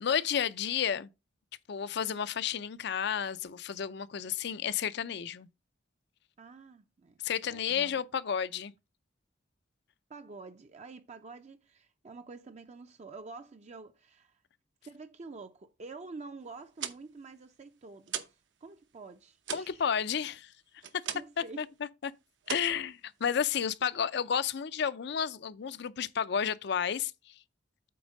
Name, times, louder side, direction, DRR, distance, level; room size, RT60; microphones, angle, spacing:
voice 1, 0.0-1.1 1.7-5.5 7.2-8.7 19.5-20.5 20.9-21.0 21.6-21.7 22.0-22.1 22.5-27.3, left 7 dB, 65° left, 0.5 m, -31 dB
voice 2, 6.4-7.2 7.4-8.0 10.1-14.4 14.8-19.8 21.1-21.7, right 3 dB, 40° right, 0.5 m, -48 dB
sound 1, 16.6-18.5 18.8-21.5 21.8-22.1 22.4-23.5, right 8 dB, 80° right, 0.9 m, -40 dB
8.5 x 3.6 x 5.1 m
head